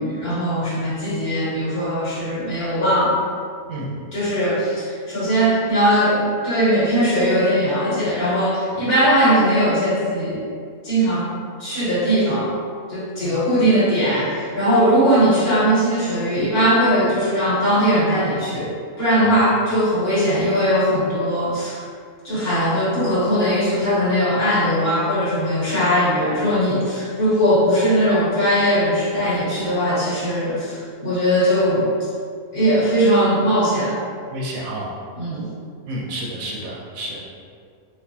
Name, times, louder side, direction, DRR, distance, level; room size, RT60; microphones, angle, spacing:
voice 1, 0.0-3.2 4.1-10.4 10.8-11.3 11.6-12.5 12.9-18.7 19.0-21.8 22.2-31.8 32.5-33.9 35.1-35.4, equal, 45° left, -11 dB, 1.5 m, -19 dB
voice 2, 34.3-34.9 35.9-37.2, right 1 dB, 75° right, -3 dB, 1.0 m, -30 dB
4.0 x 2.6 x 2.7 m, 2.2 s
omnidirectional pair, 1.5 m